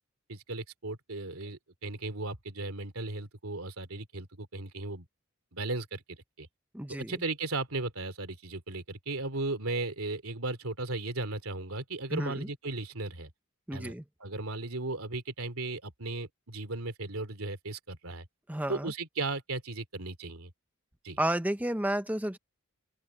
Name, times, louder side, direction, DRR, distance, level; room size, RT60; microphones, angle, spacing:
voice 1, 0.3-5.1 5.5-6.5 7.0-13.3 13.7-13.9 14.2-18.2 18.7-20.5 21.0-21.2, right 2 dB, 85° right, 2.9 m, -36 dB
voice 2, 6.7-7.1 12.1-12.5 13.7-14.0 18.5-18.9 21.2-22.4, right 1 dB, 5° right, 0.8 m, -31 dB
open air
head